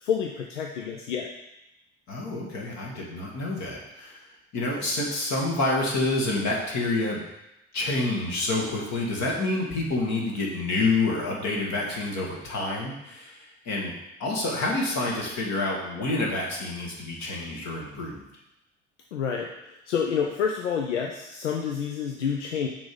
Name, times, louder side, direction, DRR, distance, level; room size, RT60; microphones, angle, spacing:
voice 1, 0.0-1.3 19.1-19.5 19.9-22.7, left 7 dB, 85° left, 1 dB, 0.5 m, -28 dB
voice 2, 2.1-4.2 4.5-7.2 7.7-13.9 14.2-18.2, left 2 dB, 50° left, -3 dB, 1.7 m, -28 dB
5.9 x 3.6 x 5.3 m, 0.90 s
figure-of-eight pair, 55°, 35 cm